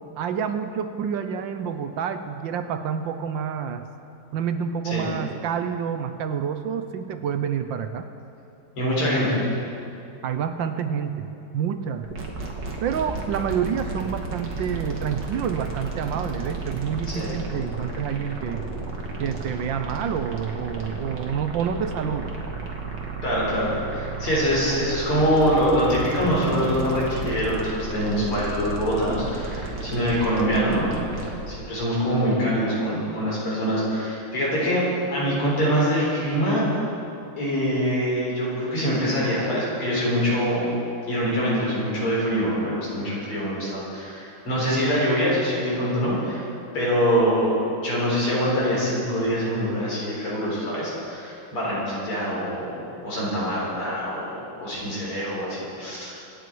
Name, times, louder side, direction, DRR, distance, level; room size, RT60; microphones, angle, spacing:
voice 1, 0.2-3.8 4.3-8.1 10.2-12.1 12.8-18.7 19.2-22.3, right 7 dB, 70° right, 8 dB, 1.3 m, -28 dB
voice 2, 8.8-9.4 17.1-17.3 23.2-30.9 31.2-34.8 35.1-36.7 37.4-40.7 41.1-46.5 46.7-56.1, equal, 85° left, -6 dB, 5.0 m, -24 dB
sound 1, 12.0-31.5, right 3 dB, 55° right, 2.2 m, -33 dB
25.5 x 8.9 x 4.7 m, 2.7 s
omnidirectional pair, 2.3 m